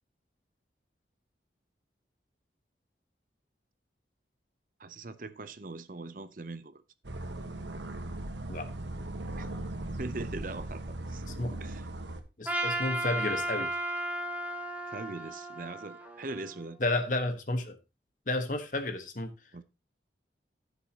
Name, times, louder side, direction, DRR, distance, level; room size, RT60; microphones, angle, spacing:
voice 1, 4.8-6.8 9.3-9.5 10.0-10.8 11.1-11.2 11.6-11.8 14.9-16.8 19.5-19.6, right 2 dB, 50° right, 0.7 m, -41 dB
sound 1, 7.0-12.2, right 1 dB, 85° right, 1.4 m, -38 dB
voice 2, 12.4-13.7 16.8-17.8 18.3-19.3, left 2 dB, 45° left, 1.4 m, -31 dB
Trumpet, 12.5-16.8, right 1 dB, 10° right, 1.3 m, -34 dB
15.0 x 6.7 x 2.9 m
head